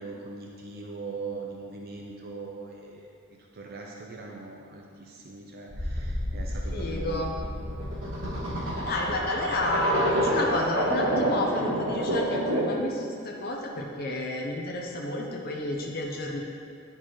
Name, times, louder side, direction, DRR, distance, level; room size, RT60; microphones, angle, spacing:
voice 1, 0.0-3.1 3.5-7.6 8.8-9.2, right 3 dB, 50° right, 0 dB, 0.6 m, -41 dB
sound 1, 5.7-12.9, right 1 dB, 90° right, 1.3 m, -28 dB
voice 2, 6.7-7.3 8.8-16.4, left 1 dB, 50° left, -1 dB, 0.6 m, -31 dB
9.9 x 4.5 x 3.0 m, 2.2 s
head